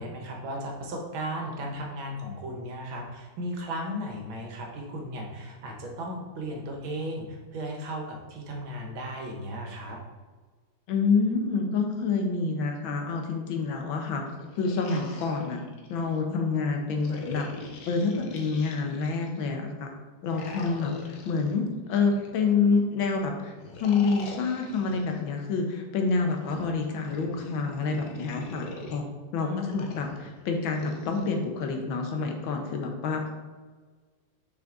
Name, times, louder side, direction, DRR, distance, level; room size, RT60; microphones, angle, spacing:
voice 1, 0.0-10.0 29.4-30.0, equal, 90° right, 0 dB, 2.0 m, -35 dB
voice 2, 10.9-14.2 14.6-15.6 15.9-17.5 17.9-19.9 20.2-23.5 23.8-29.0 29.3-30.1 30.5-33.2, left 4 dB, 90° left, 3 dB, 1.7 m, -27 dB
sound 1, 14.3-16.2 17.0-19.4 20.2-22.8 23.6-25.2 26.2-29.0 29.7-31.3, left 2 dB, 65° left, 1.5 m, -43 dB
6.0 x 5.1 x 3.8 m, 1.4 s
omnidirectional pair, 2.1 m